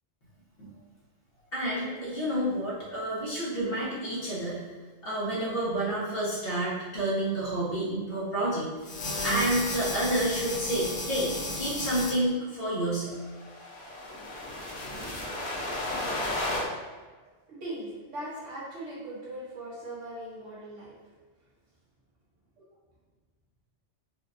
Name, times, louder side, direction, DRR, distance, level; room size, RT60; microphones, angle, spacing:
voice 1, 1.5-4.6 5.0-8.7 9.2-13.1, right 1 dB, 55° left, -8 dB, 1.3 m, -29 dB
sound 1, 8.8-12.1 13.3-16.6, left 1 dB, 80° left, 1.1 m, -33 dB
voice 2, 17.2-20.9, right 1 dB, 80° right, -8 dB, 1.5 m, -40 dB
4.4 x 2.3 x 2.5 m, 1.3 s
omnidirectional pair, 1.2 m